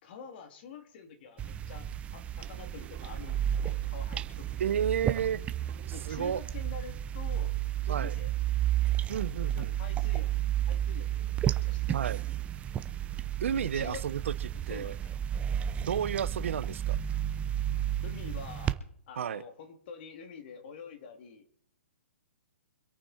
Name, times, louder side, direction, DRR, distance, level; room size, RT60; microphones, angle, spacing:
voice 1, 0.0-4.8 5.9-7.5 7.9-8.3 9.6-10.3 10.7-12.1 13.6-14.1 14.7-15.1 18.0-18.8 19.1-21.4, left 6 dB, 50° left, 6 dB, 3.1 m, -47 dB
sound 1, 1.4-18.7, right 11 dB, 15° right, 0.8 m, -32 dB
sound 2, 2.4-6.4, right 10 dB, 35° right, 5.0 m, -54 dB
voice 2, 4.6-5.4 6.0-6.4 7.9-8.1 9.1-9.8 11.9-12.2 13.4-14.3 14.7-14.9 15.8-17.0 19.2-19.4, right 8 dB, 70° right, 17 dB, 0.8 m, -31 dB
25.0 x 8.8 x 4.5 m, 0.66 s
hypercardioid pair, 140°, 7 cm